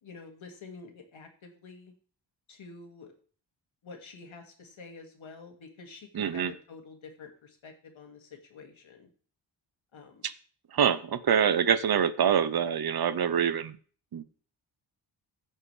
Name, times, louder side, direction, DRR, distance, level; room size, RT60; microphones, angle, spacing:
voice 1, 0.0-1.9 2.5-3.1 3.8-9.1 9.9-10.3, left 4 dB, 75° left, 3 dB, 2.2 m, -48 dB
voice 2, 6.1-6.5 10.2-10.3 10.7-13.8 14.1-14.2, right 8 dB, 50° right, 14 dB, 0.8 m, -25 dB
15.0 x 5.5 x 3.3 m, 0.43 s
wide cardioid pair, 90°, 48 cm